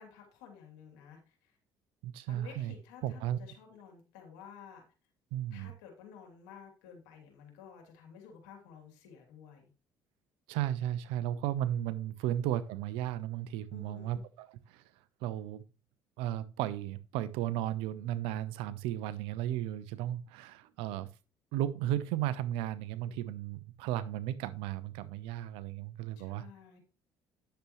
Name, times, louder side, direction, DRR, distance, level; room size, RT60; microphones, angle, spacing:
voice 1, 0.0-1.6 2.3-4.8 5.5-9.7 13.7-14.2 26.2-26.8, left 7 dB, 85° left, 3.0 m, -53 dB
voice 2, 2.0-2.7 3.0-3.4 5.3-5.7 10.5-14.8 15.2-15.6 16.2-21.1 21.5-26.5, right 12 dB, 80° right, 0.8 m, -35 dB
10.0 x 7.1 x 3.1 m
hypercardioid pair, 65°, 9 cm